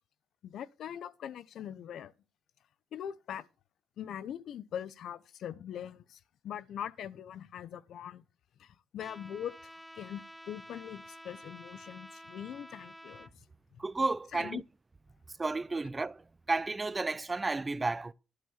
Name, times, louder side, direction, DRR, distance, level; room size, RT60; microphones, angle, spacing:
voice 1, 0.4-2.1 2.9-3.5 4.0-8.2 8.6-13.4 13.7-13.8 14.3-14.6, left 9 dB, 70° left, 0.7 m, -42 dB
Trumpet, 9.0-13.3, equal, 5° left, 0.9 m, -50 dB
voice 2, 13.8-14.6 15.4-18.1, right 3 dB, 25° right, 0.5 m, -32 dB
11.5 x 5.6 x 7.2 m
cardioid pair, 90°, 0 cm